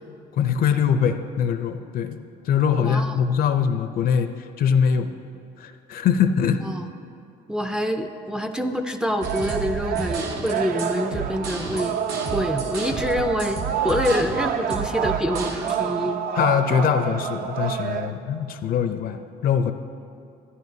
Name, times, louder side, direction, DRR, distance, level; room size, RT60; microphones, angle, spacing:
voice 1, 0.3-2.2 2.5-4.3 4.6-5.1 5.6-6.6 16.4-19.7, left 7 dB, 60° left, 9 dB, 0.5 m, -22 dB
voice 2, 2.8-3.2 6.6-6.9 7.5-12.0 12.3-16.2, equal, 5° right, 5 dB, 0.4 m, -26 dB
sound 1, 9.2-18.1, right 7 dB, 60° right, 0.5 m, -28 dB
sound 2, 9.2-15.8, right 4 dB, 80° right, 1.2 m, -32 dB
12.5 x 10.0 x 2.7 m, 2.5 s
cardioid pair, 110°, 17 cm